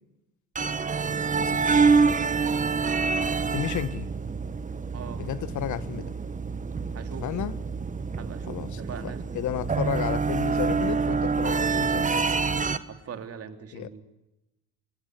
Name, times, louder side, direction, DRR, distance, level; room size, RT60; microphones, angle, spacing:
sound 1, 0.5-12.8, right 5 dB, 20° right, 1.4 m, -26 dB
voice 1, 1.4-1.8 3.5-4.1 5.2-6.1 7.2-7.5 8.5-12.3 13.7-13.9, left 11 dB, 45° left, 1.7 m, -32 dB
voice 2, 4.9-5.2 6.9-7.3 8.2-9.4 12.9-14.0, right 6 dB, 35° right, 3.4 m, -41 dB
27.0 x 22.5 x 8.1 m
supercardioid pair, 110°, 42 cm